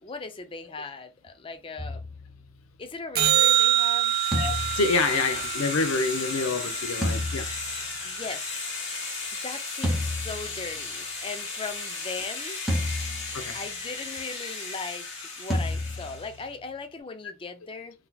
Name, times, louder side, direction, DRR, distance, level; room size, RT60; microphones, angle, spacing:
voice 1, 0.0-2.0 2.8-4.2 8.0-8.7 9.3-12.6 13.5-18.1, left 4 dB, 25° left, 0.4 m, -38 dB
sound 1, 1.8-3.1 4.3-6.0 7.0-8.3 9.8-11.2 12.7-13.9 15.5-16.9, left 1 dB, ahead, 0.8 m, -32 dB
sound 2, 3.2-7.6 14.2-14.3, right 13 dB, 45° right, 0.4 m, -26 dB
sound 3, 3.3-16.4, left 3 dB, 60° left, 1.3 m, -35 dB
voice 2, 4.3-7.5 13.3-13.6, left 3 dB, 85° left, 0.5 m, -27 dB
3.9 x 2.8 x 2.3 m
head